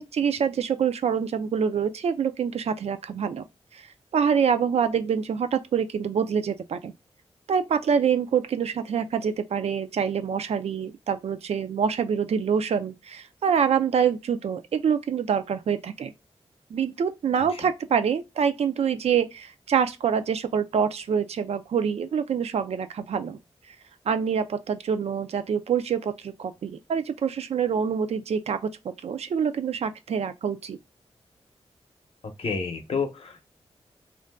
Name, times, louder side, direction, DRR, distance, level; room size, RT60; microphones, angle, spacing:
voice 1, 0.0-3.4 3.7-3.9 4.1-6.9 7.5-16.1 16.7-23.4 24.1-30.8, right 7 dB, 70° right, 0.4 m, -26 dB
voice 2, 32.4-33.4, left 5 dB, 60° left, 0.7 m, -29 dB
2.5 x 2.2 x 3.4 m
wide cardioid pair, 80°, 11 cm